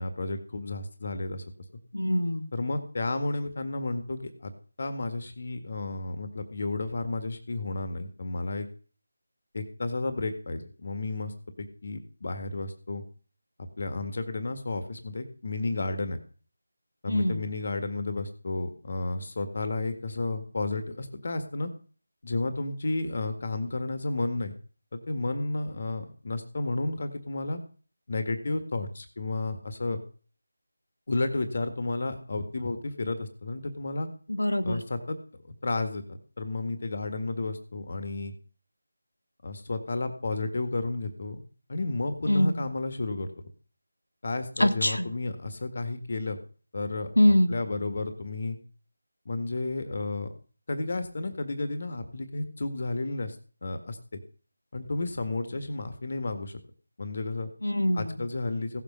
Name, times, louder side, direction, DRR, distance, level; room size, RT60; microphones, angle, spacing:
voice 1, 0.0-1.4 2.5-4.5 4.8-8.7 9.5-13.0 13.6-16.2 17.0-21.7 22.2-24.5 24.9-27.6 28.1-30.0 31.1-34.1 34.6-35.2 35.6-36.0 36.4-38.3 39.4-41.4 41.7-43.3 44.2-46.4 46.7-48.6 49.3-50.3 50.7-53.4 53.6-54.0 54.7-56.6 57.0-57.5 57.9-58.8, left 2 dB, 45° left, 9 dB, 1.9 m, -32 dB
voice 2, 1.9-2.5 17.1-17.4 34.3-34.8 42.3-42.7 44.6-45.1 47.2-47.6 57.6-58.3, left 1 dB, 85° left, 8 dB, 2.0 m, -24 dB
16.5 x 7.5 x 5.6 m, 0.41 s
figure-of-eight pair, 165°, 0 cm